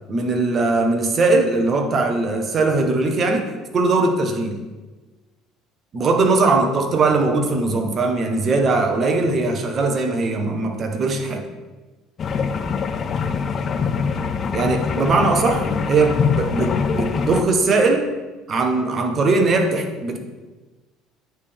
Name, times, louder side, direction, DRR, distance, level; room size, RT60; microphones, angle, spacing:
voice 1, 0.1-3.4 3.7-4.6 5.9-11.4 14.5-18.1 18.5-20.2, right 3 dB, 40° right, 4 dB, 0.9 m, -20 dB
sound 1, 12.2-17.4, left 5 dB, 40° left, 0.4 m, -23 dB
9.0 x 3.4 x 3.5 m, 1.2 s
supercardioid pair, 105°, 0 cm